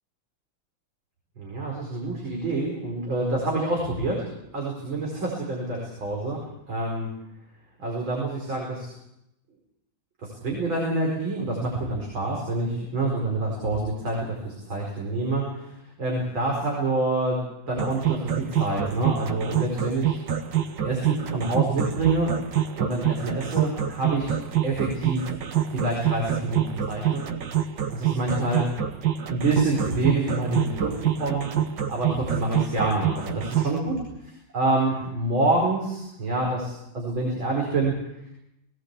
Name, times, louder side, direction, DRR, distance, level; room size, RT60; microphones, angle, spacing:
voice 1, 1.4-4.3 4.5-6.4 6.7-7.1 7.8-8.9 10.2-17.4 17.7-20.2 20.8-22.3 22.8-24.3 24.6-25.3 25.7-27.3 27.9-28.7 29.3-31.5 31.9-37.9, right 2 dB, 90° right, -2 dB, 5.7 m, -27 dB
sound 1, 17.8-33.8, right 10 dB, 70° right, 1.8 m, -26 dB
20.0 x 18.0 x 8.4 m, 0.83 s
omnidirectional pair, 2.1 m